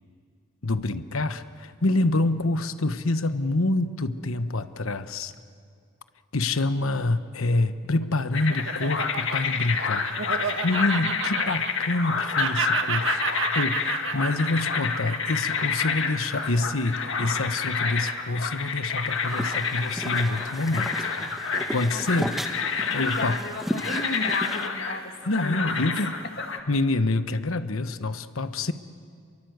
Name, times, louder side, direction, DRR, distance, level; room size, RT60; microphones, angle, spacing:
voice 1, 0.6-5.3 6.3-10.1 10.6-21.1 21.5-22.3 22.8-23.4 25.3-26.1 26.7-28.7, left 2 dB, 85° left, 11 dB, 1.2 m, -27 dB
Laughter, 7.8-12.1 12.4-16.8, right 6 dB, 65° right, 1.5 m, -31 dB
sound 1, 8.3-26.6, left 5 dB, 70° left, 1.9 m, -29 dB
sound 2, 18.9-24.7, equal, ahead, 1.2 m, -35 dB
voice 2, 21.9-22.3 22.9-25.9, left 2 dB, 50° left, 5 dB, 1.9 m, -34 dB
30.0 x 23.0 x 8.1 m, 2.2 s
head